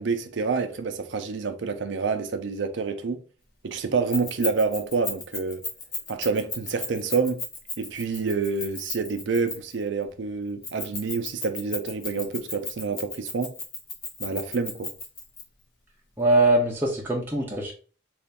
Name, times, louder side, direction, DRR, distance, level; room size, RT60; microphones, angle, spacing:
voice 1, 0.0-3.2 3.6-5.6 6.1-7.4 7.8-13.5 14.2-14.9, right 4 dB, 65° right, 0.5 m, -28 dB
Keys jangling, 4.1-9.8 10.6-15.4, left 3 dB, 50° left, 1.0 m, -34 dB
voice 2, 16.2-17.7, right 2 dB, 10° right, 0.5 m, -22 dB
3.3 x 2.4 x 3.8 m
head